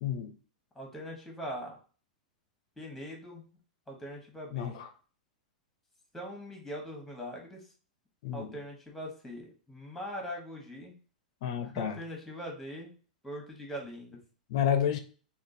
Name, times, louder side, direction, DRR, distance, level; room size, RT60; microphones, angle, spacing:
voice 1, 0.0-0.3 4.5-4.9 8.2-8.6 11.4-12.0 14.5-15.0, left 9 dB, 55° left, 0.5 m, -30 dB
voice 2, 0.7-1.8 2.8-3.4 3.9-4.8 6.1-7.6 8.3-10.9 11.6-12.9 13.2-14.2, equal, 5° left, 1.1 m, -41 dB
3.6 x 2.3 x 2.6 m
figure-of-eight pair, 100°, 4 cm